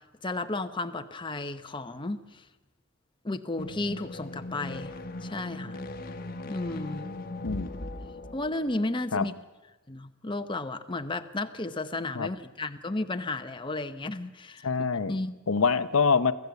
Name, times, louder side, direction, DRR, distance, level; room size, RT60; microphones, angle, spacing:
voice 1, 0.2-2.4 3.2-4.9 5.2-5.8 6.5-7.1 8.3-9.3 9.9-15.4, left 2 dB, 25° left, 8 dB, 0.9 m, -33 dB
sound 1, 3.5-9.1, left 2 dB, 45° left, 1.2 m, -39 dB
voice 2, 14.6-15.1 15.5-16.3, left 5 dB, 80° left, 12 dB, 0.8 m, -24 dB
24.0 x 15.0 x 8.2 m, 1.2 s
head